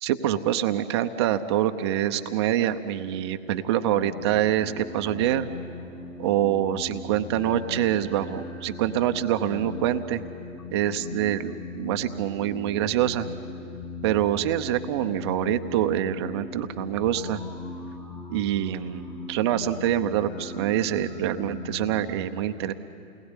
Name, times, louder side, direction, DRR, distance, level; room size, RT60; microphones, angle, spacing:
voice 1, 0.0-5.5 6.2-10.2 10.7-13.3 14.0-17.4 18.3-22.7, right 11 dB, 20° right, 8 dB, 0.6 m, -25 dB
sound 1, 4.0-22.1, left 3 dB, 5° left, 1.0 m, -39 dB
29.0 x 20.0 x 9.8 m, 2.6 s
hypercardioid pair, 145°, 41 cm